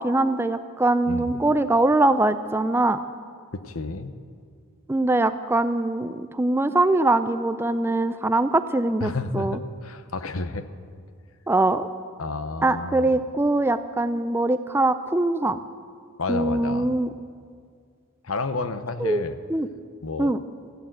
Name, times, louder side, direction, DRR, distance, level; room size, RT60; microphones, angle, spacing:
voice 1, 0.0-3.0 4.9-9.6 11.5-11.9 12.6-15.6 16.3-17.1 19.0-19.2 19.5-19.7 20.2-20.4, right 2 dB, 10° right, 12 dB, 0.4 m, -22 dB
voice 2, 1.1-1.4 3.5-4.1 9.0-10.7 12.2-13.2 16.2-16.9 18.2-19.4 20.0-20.4, left 3 dB, 75° left, 11 dB, 0.9 m, -31 dB
14.0 x 11.5 x 7.9 m, 2.1 s
head